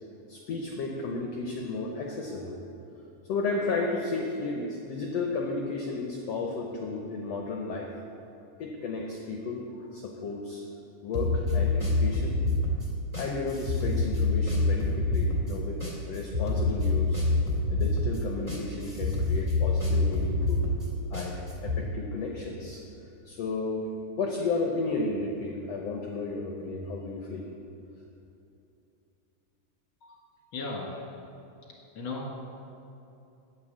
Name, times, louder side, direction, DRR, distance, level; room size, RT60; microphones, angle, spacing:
voice 1, 0.3-2.6 3.3-7.9 8.6-9.7 9.9-10.6 11.0-12.4 13.2-15.8 16.1-17.2 17.7-20.6 21.1-22.8 23.2-23.9 24.2-27.5, left 3 dB, 70° left, 0 dB, 1.6 m, -33 dB
sound 1, 11.1-21.8, left 2 dB, 15° right, 1.4 m, -27 dB
voice 2, 30.5-31.1 31.9-32.3, left 3 dB, 45° left, -2 dB, 2.0 m, -36 dB
9.5 x 9.0 x 7.4 m, 2.8 s
omnidirectional pair, 3.9 m